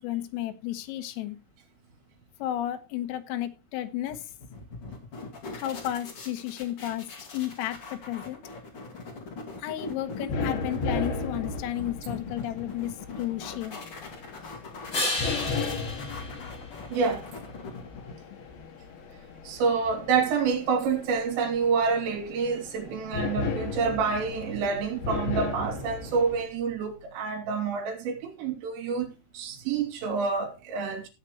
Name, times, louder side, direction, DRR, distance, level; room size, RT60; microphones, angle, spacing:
voice 1, 0.0-1.4 2.4-4.3 5.5-8.4 9.6-13.8, left 13 dB, 90° left, 3.9 m, -33 dB
sound 1, 4.1-18.4, left 3 dB, 40° left, 2.0 m, -41 dB
sound 2, 10.0-26.4, left 4 dB, 60° left, 3.4 m, -36 dB
sound 3, 14.9-17.5 23.2-27.2, left 2 dB, 25° left, 5.1 m, -37 dB
voice 2, 16.9-17.2 19.4-29.1 29.3-31.1, right 5 dB, 75° right, 5.1 m, -28 dB
15.5 x 8.4 x 3.0 m
omnidirectional pair, 5.9 m